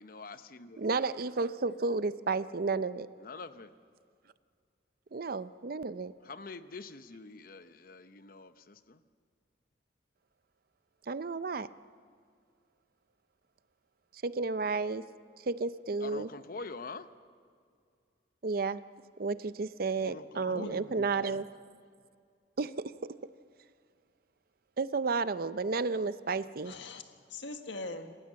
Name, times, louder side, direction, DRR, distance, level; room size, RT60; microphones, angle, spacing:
voice 1, 0.0-0.8 3.2-3.7 6.2-9.0 16.0-17.1 20.0-20.8, left 3 dB, 50° left, 11 dB, 0.9 m, -45 dB
voice 2, 0.8-3.1 5.1-6.1 11.1-11.7 14.2-15.0 15.5-16.3 18.4-18.8 19.2-21.4 22.6-22.7 24.8-26.7, right 4 dB, 55° right, 14 dB, 0.6 m, -32 dB
voice 3, 20.4-21.3 26.6-28.2, left 2 dB, 80° left, 7 dB, 1.6 m, -42 dB
27.5 x 15.5 x 7.6 m, 2.2 s
head